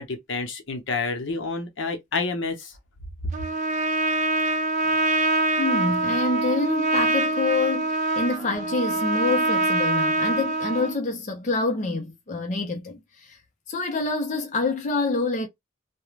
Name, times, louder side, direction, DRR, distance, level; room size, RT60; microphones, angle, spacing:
voice 1, 0.0-2.7, left 4 dB, 70° left, 0.8 m, -29 dB
Trumpet, 3.3-11.0, right 2 dB, 40° right, 0.5 m, -24 dB
voice 2, 5.6-13.4 13.7-15.5, left 3 dB, 40° left, 0.6 m, -27 dB
2.4 x 2.2 x 3.1 m
head